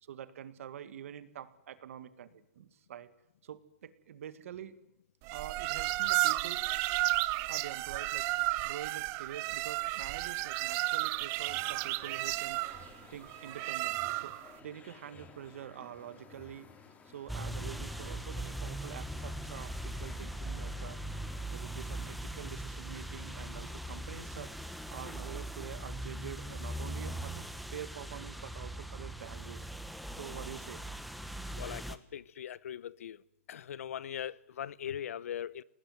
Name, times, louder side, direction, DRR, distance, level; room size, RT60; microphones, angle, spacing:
voice 1, 0.0-2.3 2.5-3.1 3.4-4.8 5.3-6.7 7.4-12.6 13.1-16.7 17.1-27.4 27.7-29.6 30.2-30.8, right 10 dB, 80° right, 2.0 m, -46 dB
sound 1, 5.3-14.5, right 20 dB, 40° right, 1.0 m, -33 dB
sound 2, 11.3-22.0, left 4 dB, 20° left, 3.0 m, -55 dB
sound 3, 17.3-32.0, right 1 dB, ahead, 1.2 m, -40 dB
voice 2, 31.6-33.2 33.5-35.6, left 9 dB, 85° left, 0.9 m, -40 dB
26.5 x 19.0 x 9.4 m
hypercardioid pair, 145°, 7 cm